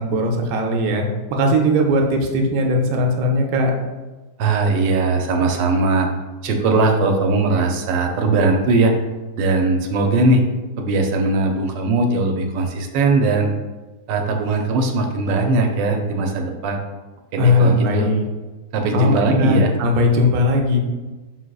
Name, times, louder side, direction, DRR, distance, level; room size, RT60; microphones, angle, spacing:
voice 1, 0.0-3.7 17.4-18.2 18.9-20.8, left 1 dB, 70° right, 2 dB, 1.0 m, -18 dB
voice 2, 4.4-6.1 6.4-8.9 9.4-10.4 10.8-13.5 14.1-16.8 17.3-18.1 18.7-19.7, right 3 dB, 90° right, 3 dB, 1.3 m, -19 dB
4.8 x 4.0 x 2.3 m, 1.2 s
omnidirectional pair, 1.9 m